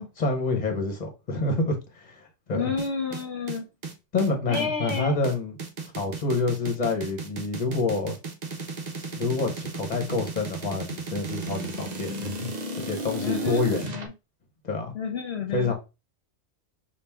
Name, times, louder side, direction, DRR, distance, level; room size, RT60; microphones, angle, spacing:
voice 1, 0.0-2.7 4.1-5.6 6.0-8.2 9.1-12.5 12.8-13.9 14.6-14.9 15.5-15.7, left 3 dB, 40° left, 1.2 m, -27 dB
voice 2, 2.5-3.7 4.5-5.1 13.2-14.1 14.9-15.7, left 5 dB, 65° left, 1.1 m, -30 dB
sound 1, 2.8-14.1, right 3 dB, 45° right, 0.7 m, -35 dB
5.9 x 2.5 x 3.5 m
omnidirectional pair, 1.2 m